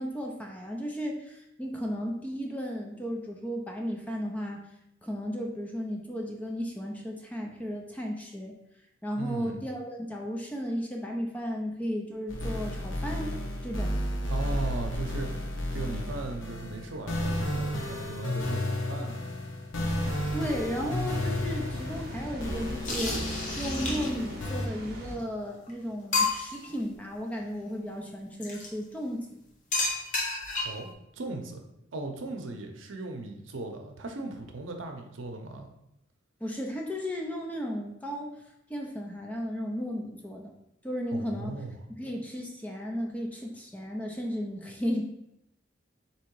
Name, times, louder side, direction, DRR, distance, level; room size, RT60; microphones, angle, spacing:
voice 1, 0.0-4.6 5.0-8.5 9.0-13.4 13.6-14.0 20.3-29.3 36.4-38.4 38.7-40.5 40.8-41.5 42.0-45.0, equal, 10° left, 0 dB, 0.5 m, -34 dB
voice 2, 9.2-9.6 14.3-15.3 15.7-19.2 30.6-31.6 31.9-35.7 41.1-41.8, right 3 dB, 85° right, 4 dB, 0.7 m, -38 dB
sound 1, 12.3-24.7, left 1 dB, 85° left, 0.8 m, -32 dB
Water, 19.8-25.2, right 1 dB, 50° right, 0.7 m, -41 dB
sound 2, 22.8-24.3 25.2-25.3 25.7-25.8 26.1-26.7 28.4-28.7 29.7-30.9, left 3 dB, 40° left, 0.9 m, -30 dB
3.7 x 3.0 x 4.5 m, 0.81 s
head